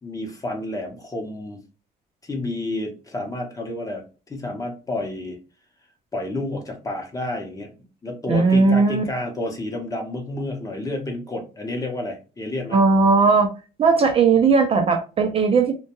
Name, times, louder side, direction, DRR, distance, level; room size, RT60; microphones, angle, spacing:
voice 1, 0.0-1.6 2.2-5.4 6.1-7.7 8.0-12.8, left 2 dB, 20° left, 2 dB, 0.7 m, -30 dB
voice 2, 8.3-9.0 12.7-13.5 13.8-15.7, right 4 dB, 35° right, 5 dB, 0.4 m, -17 dB
2.2 x 2.1 x 2.9 m, 0.33 s
cardioid pair, 110°, 17 cm